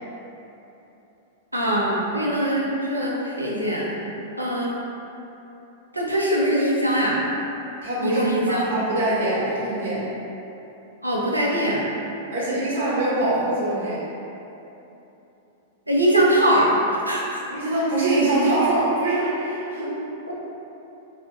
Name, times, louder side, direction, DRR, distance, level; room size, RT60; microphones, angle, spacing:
voice 1, 1.5-3.9 4.4-4.8 5.9-7.2 8.0-8.7 11.0-11.9 15.9-16.8 17.0-17.2, right 1 dB, 90° right, -4 dB, 0.5 m, -22 dB
voice 2, 7.8-10.1 12.3-14.0 17.5-20.0, right 2 dB, 60° right, -8 dB, 1.0 m, -23 dB
2.5 x 2.1 x 3.7 m, 3.0 s
figure-of-eight pair, 100°, 0 cm